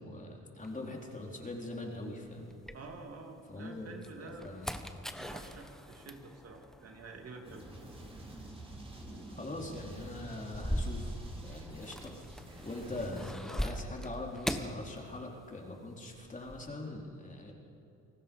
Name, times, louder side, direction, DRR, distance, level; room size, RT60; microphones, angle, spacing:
voice 1, 0.0-2.5 3.5-4.8 9.3-11.1 11.4-12.2 12.6-17.5, left 2 dB, 25° left, -1 dB, 4.2 m, -42 dB
sound 1, 0.6-3.4 3.9-15.6 15.9-16.7, equal, ahead, 1.2 m, -42 dB
voice 2, 2.7-4.5 5.2-7.6, right 3 dB, 55° right, 2 dB, 2.9 m, -48 dB
sound 2, 7.4-13.3, right 1 dB, 20° right, 4.0 m, -48 dB
29.0 x 19.5 x 5.5 m, 2.8 s
cardioid pair, 90°, 30 cm